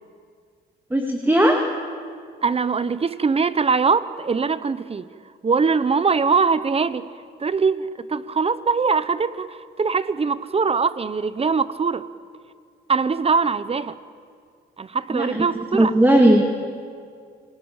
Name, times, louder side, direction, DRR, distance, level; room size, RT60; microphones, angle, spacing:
voice 1, 0.9-1.6 15.1-15.5 15.7-16.4, right 1 dB, 10° right, 2 dB, 2.4 m, -17 dB
voice 2, 2.4-5.1 5.4-7.1 7.4-12.0 12.9-14.0 14.8-15.9, right 5 dB, 30° right, 15 dB, 0.8 m, -22 dB
28.0 x 19.0 x 8.9 m, 2.2 s
cardioid pair, 90°, 20 cm